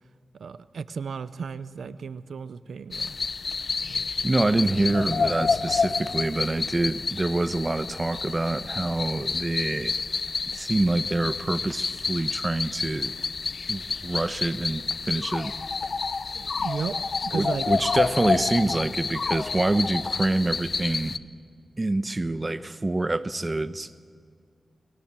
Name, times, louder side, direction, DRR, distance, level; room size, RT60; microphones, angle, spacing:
voice 1, 0.4-3.1 16.3-17.7, right 5 dB, 85° right, 14 dB, 0.7 m, -34 dB
sound 1, 2.9-21.2, left 4 dB, 60° left, 0.8 m, -29 dB
voice 2, 4.2-10.0 10.5-13.1 13.7-15.5 17.3-21.2 21.8-23.9, right 2 dB, 30° right, 12 dB, 1.1 m, -26 dB
30.0 x 22.5 x 7.5 m, 2.2 s
cardioid pair, 70°, 0 cm